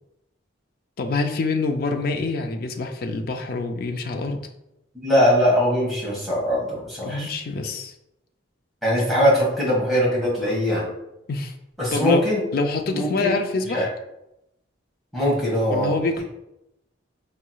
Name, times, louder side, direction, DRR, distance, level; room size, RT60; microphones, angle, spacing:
voice 1, 1.0-4.5 7.0-7.9 11.3-11.5 11.9-12.2 12.5-13.9 15.7-16.2, left 3 dB, 45° left, 5 dB, 0.3 m, -26 dB
voice 2, 4.9-7.3 8.8-10.9 11.8-12.4 12.9-13.4 13.7-13.9 15.1-16.2, equal, ahead, -7 dB, 1.2 m, -21 dB
4.6 x 3.0 x 2.2 m, 0.87 s
head